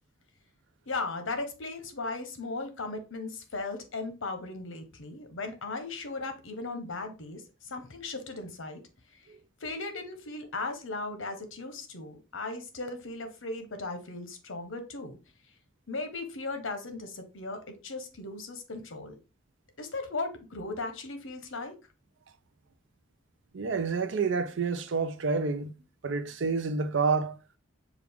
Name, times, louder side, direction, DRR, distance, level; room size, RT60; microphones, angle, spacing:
voice 1, 0.9-8.8 9.6-15.2 15.9-19.1 19.8-21.7, left 3 dB, 70° left, 0.9 m, -37 dB
voice 2, 23.5-25.7 26.0-27.4, right 4 dB, 60° right, 0.5 m, -28 dB
6.1 x 2.5 x 3.5 m
head